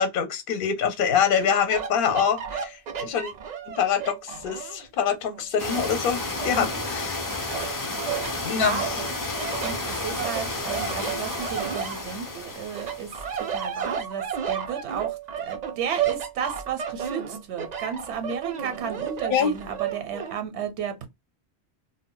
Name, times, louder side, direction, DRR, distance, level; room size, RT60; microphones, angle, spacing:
voice 1, 0.0-3.3 3.8-7.1 8.4-8.9 19.3-19.5, left 7 dB, 60° left, 0.7 m, -25 dB
sound 1, 1.4-4.9 5.3-7.1 7.5-8.3 8.8-12.4 12.7-20.3, right 8 dB, 55° right, 0.5 m, -33 dB
Waterfall Bahamas, 5.6-13.6, left 2 dB, 30° left, 0.3 m, -32 dB
voice 2, 6.5-6.8 8.4-8.9 9.6-13.1 13.5-21.1, right 7 dB, 80° right, 0.8 m, -33 dB
2.2 x 2.1 x 3.6 m
omnidirectional pair, 1.1 m